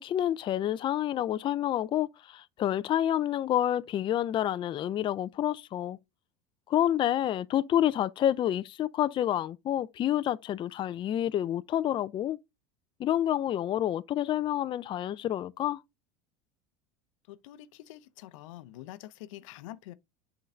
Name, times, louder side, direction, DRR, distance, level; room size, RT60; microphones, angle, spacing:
voice 1, 0.0-6.0 6.7-12.4 13.0-15.8, left 11 dB, 30° left, 0.4 m, -28 dB
voice 2, 17.3-19.9, left 14 dB, 80° left, 0.6 m, -46 dB
7.5 x 3.9 x 3.2 m
supercardioid pair, 110°, 16 cm